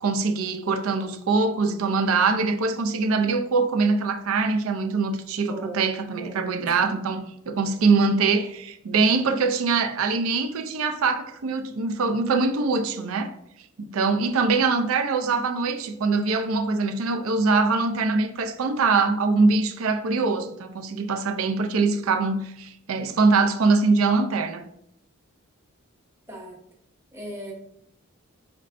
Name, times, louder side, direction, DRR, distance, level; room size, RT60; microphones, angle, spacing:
voice 1, 0.0-13.3 13.8-24.6, right 4 dB, 75° right, 0.5 m, -23 dB
voice 2, 5.4-5.9 6.2-6.7 26.3-26.6 27.1-27.5, right 1 dB, 10° right, 0.9 m, -38 dB
5.2 x 3.2 x 2.5 m
head